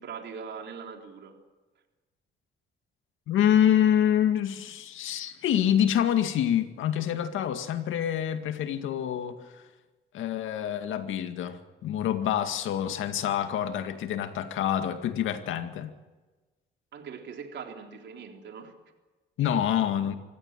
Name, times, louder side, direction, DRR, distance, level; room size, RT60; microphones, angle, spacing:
voice 1, 0.0-1.4 16.9-18.7, right 6 dB, 65° right, 3 dB, 3.9 m, -41 dB
voice 2, 3.3-9.4 10.1-15.9 19.4-20.1, left 10 dB, 80° left, 8 dB, 2.1 m, -26 dB
24.5 x 16.0 x 9.2 m, 1.2 s
cardioid pair, 90°, 20 cm